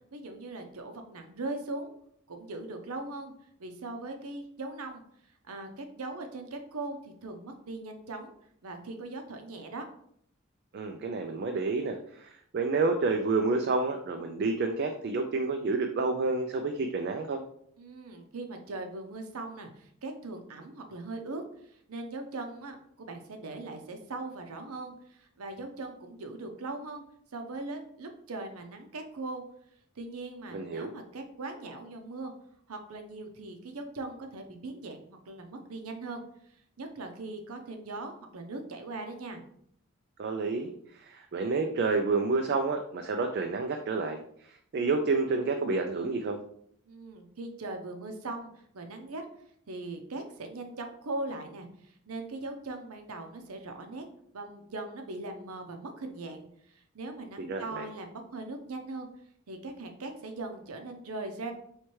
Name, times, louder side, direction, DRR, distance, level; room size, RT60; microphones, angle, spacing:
voice 1, 0.1-1.9 2.3-3.3 3.6-5.0 5.5-8.3 8.6-9.8 17.8-21.4 21.7-27.0 27.3-29.4 30.0-32.3 32.7-36.2 36.8-39.4 46.9-48.5 48.7-49.2 49.7-54.0 54.3-56.4 56.7-59.1 59.5-61.5, right 2 dB, 75° right, 5 dB, 0.7 m, -40 dB
voice 2, 10.7-17.4 30.5-30.9 40.2-46.4 57.4-57.9, right 3 dB, 45° right, 4 dB, 0.3 m, -29 dB
4.4 x 3.2 x 3.1 m, 0.68 s
head